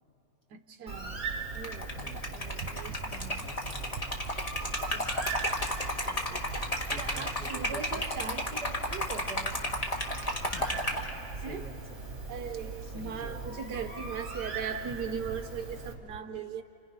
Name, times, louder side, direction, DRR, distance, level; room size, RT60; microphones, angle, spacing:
voice 1, 0.5-1.3 1.5-3.5 4.9-5.0 5.8-6.5 7.0-9.6 11.4-11.6 12.3-16.6, right 6 dB, 65° right, 7 dB, 1.3 m, -39 dB
Bird, 0.9-15.9, right 4 dB, 35° right, 3.4 m, -40 dB
Liquid, 1.5-11.1, left 1 dB, 20° left, 1.7 m, -33 dB
voice 2, 1.9-2.3 3.4-4.0 6.9-8.0 10.5-11.0 11.4-12.0 12.8-13.5, left 1 dB, 45° left, 1 dB, 2.3 m, -47 dB
29.0 x 29.0 x 5.5 m, 2.8 s
omnidirectional pair, 2.1 m